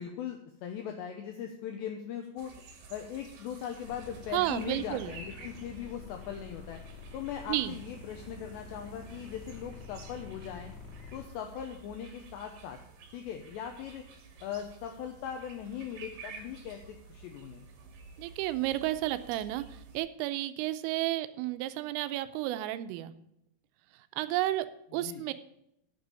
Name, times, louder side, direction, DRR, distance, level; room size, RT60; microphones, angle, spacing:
voice 1, 0.0-2.5 2.9-6.8 7.1-10.7 11.1-12.8 13.1-14.0 14.4-17.7 25.0-25.2, left 9 dB, 80° left, 4 dB, 2.7 m, -40 dB
sound 1, 2.4-20.0, right 4 dB, 55° right, 2.7 m, -51 dB
sound 2, 3.8-11.2, left 4 dB, 60° left, 4.5 m, -48 dB
voice 2, 4.3-5.2 7.5-7.8 18.2-23.1 23.9-24.7 24.9-25.3, right 15 dB, 85° right, 11 dB, 3.2 m, -32 dB
9.6 x 7.1 x 6.8 m, 0.79 s
omnidirectional pair, 5.8 m